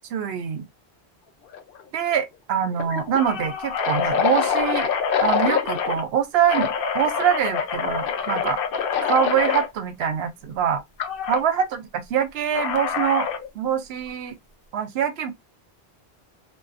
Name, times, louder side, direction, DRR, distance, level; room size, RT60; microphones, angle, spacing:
voice 1, 0.1-0.6 1.9-4.9 5.2-8.6 9.0-10.8 11.3-11.7 12.1-13.3 13.6-14.3 14.7-15.3, right 8 dB, 75° right, 0.8 m, -24 dB
sound 1, 1.5-1.8 2.1-2.2 2.8-6.0 6.5-9.7 11.0-11.4 12.5-13.5, left 7 dB, 65° left, 0.7 m, -25 dB
2.5 x 2.4 x 2.4 m
omnidirectional pair, 1.1 m